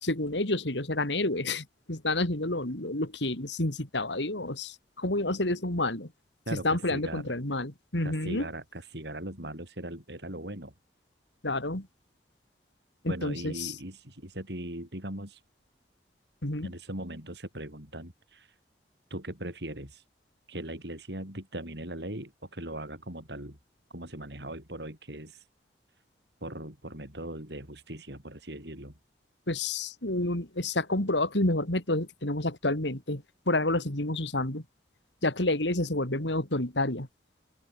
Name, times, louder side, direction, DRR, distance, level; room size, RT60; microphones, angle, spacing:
voice 1, 0.0-6.1 6.5-8.5 11.4-11.9 13.0-13.7 16.4-16.7 29.5-34.6 35.2-37.1, left 2 dB, 85° left, 3.9 m, -29 dB
voice 2, 6.5-7.3 8.0-10.7 13.1-15.4 16.6-18.5 19.1-20.0 20.5-23.6 23.9-25.4 26.4-28.9, right 1 dB, 75° right, 7.7 m, -39 dB
open air
head